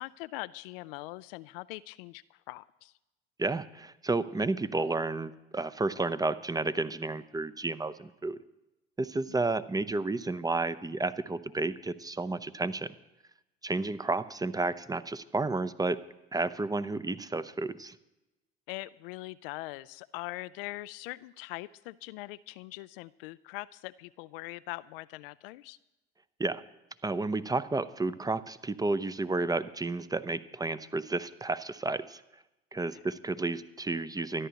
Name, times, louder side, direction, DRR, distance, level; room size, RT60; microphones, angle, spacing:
voice 1, 0.0-2.9 9.3-9.4 18.7-25.8 32.9-33.0, left 19 dB, 65° left, 17 dB, 0.4 m, -42 dB
voice 2, 3.4-8.4 9.0-12.9 13.6-16.0 16.3-17.9 26.4-26.6 27.0-32.2 32.7-34.5, right 3 dB, 10° right, 14 dB, 0.7 m, -31 dB
25.0 x 11.0 x 2.9 m, 0.97 s
figure-of-eight pair, 65°, 30 cm